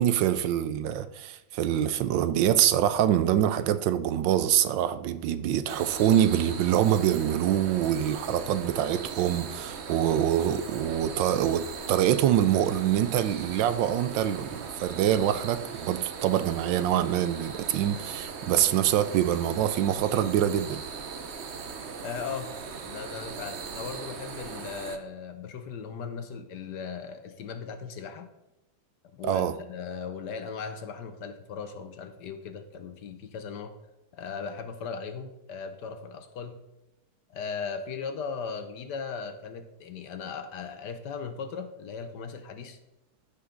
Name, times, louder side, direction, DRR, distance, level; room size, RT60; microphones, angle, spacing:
voice 1, 0.0-20.8 29.2-29.5, right 11 dB, 75° right, 1.2 m, -25 dB
sound 1, 5.7-25.0, right 5 dB, 60° right, 0.7 m, -39 dB
voice 2, 22.0-22.5 22.8-28.3 29.1-33.7 34.1-36.6 37.3-42.8, left 5 dB, 65° left, 1.4 m, -38 dB
14.5 x 5.5 x 3.8 m
omnidirectional pair, 2.2 m